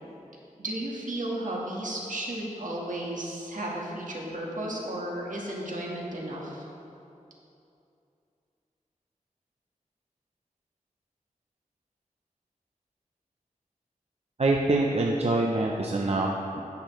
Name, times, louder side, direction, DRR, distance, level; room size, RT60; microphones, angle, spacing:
voice 1, 0.6-6.6, right 1 dB, 70° right, -3 dB, 1.5 m, -34 dB
voice 2, 14.4-16.6, right 2 dB, 50° right, -1 dB, 0.6 m, -25 dB
10.5 x 7.5 x 3.1 m, 2.7 s
wide cardioid pair, 90°, 14 cm